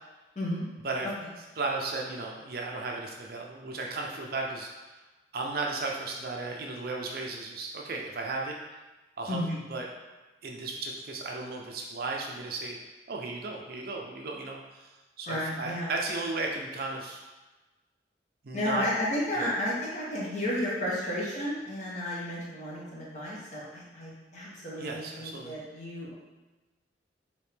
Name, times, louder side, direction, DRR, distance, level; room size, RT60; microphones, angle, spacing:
voice 1, 1.6-4.7 5.3-8.6 9.2-9.9 10.4-12.8 13.1-14.9 15.2-17.2 18.4-18.9 19.3-19.5 24.8-25.5, right 3 dB, 55° right, 0 dB, 0.5 m, -35 dB
voice 2, 15.3-15.9 18.5-26.1, left 1 dB, 40° left, -6 dB, 0.9 m, -32 dB
4.7 x 2.8 x 3.3 m, 1.2 s
head